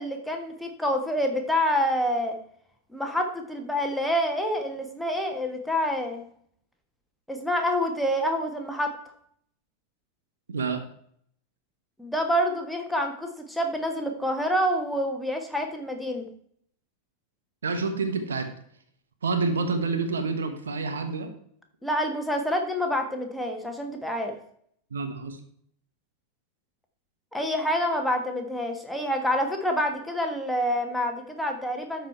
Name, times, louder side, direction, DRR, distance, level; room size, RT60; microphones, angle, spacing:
voice 1, 0.0-2.4 2.9-6.2 7.3-8.9 12.0-16.3 21.8-24.4 27.3-32.1, equal, 5° left, 3 dB, 1.5 m, -27 dB
voice 2, 10.5-10.8 17.6-18.5 19.2-21.3 24.9-25.4, right 4 dB, 70° right, 7 dB, 1.3 m, -28 dB
12.5 x 4.8 x 4.5 m, 0.65 s
figure-of-eight pair, 90°, 0 cm